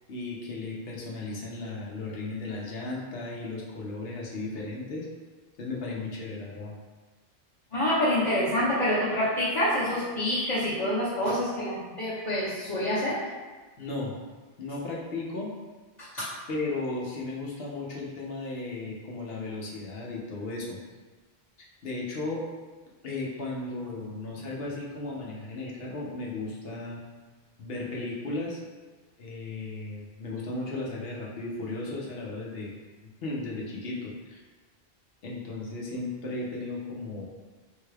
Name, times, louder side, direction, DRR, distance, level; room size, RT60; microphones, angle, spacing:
voice 1, 0.1-5.1 5.6-6.7 13.8-14.1 14.6-15.5 16.5-20.8 21.8-22.4 23.0-27.0 27.6-28.6 29.2-32.7 33.0-34.4 35.2-37.2, left 2 dB, 70° left, -3 dB, 0.9 m, -35 dB
voice 2, 7.7-13.2 16.0-16.3, left 1 dB, 30° left, -13 dB, 1.0 m, -27 dB
3.6 x 2.3 x 3.2 m, 1.3 s
omnidirectional pair, 1.1 m